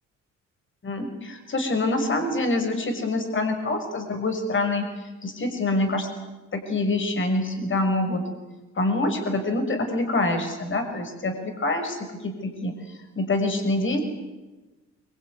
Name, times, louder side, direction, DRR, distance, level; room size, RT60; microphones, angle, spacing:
voice 1, 0.8-6.1 6.5-8.2 8.7-14.0, left 2 dB, 40° left, 6 dB, 6.1 m, -26 dB
25.0 x 22.5 x 9.8 m, 1.1 s
cardioid pair, 90°, 30 cm